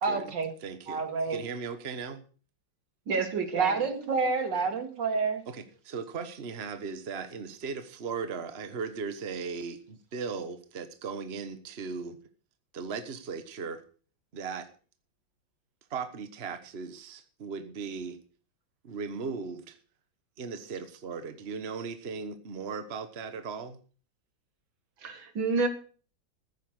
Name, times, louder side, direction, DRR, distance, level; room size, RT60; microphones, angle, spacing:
voice 1, 0.0-0.5 0.9-1.4 3.5-5.4, right 4 dB, 65° right, 7 dB, 2.7 m, -28 dB
voice 2, 0.6-1.0 1.3-2.2 4.0-4.1 5.5-12.2 12.7-13.8 14.3-14.7 15.9-18.2 18.8-19.8 20.4-23.8, right 5 dB, 35° right, 9 dB, 1.4 m, -37 dB
voice 3, 3.1-3.8 25.0-25.7, right 4 dB, 85° right, 7 dB, 2.7 m, -29 dB
15.5 x 9.2 x 6.5 m, 0.40 s
omnidirectional pair, 2.1 m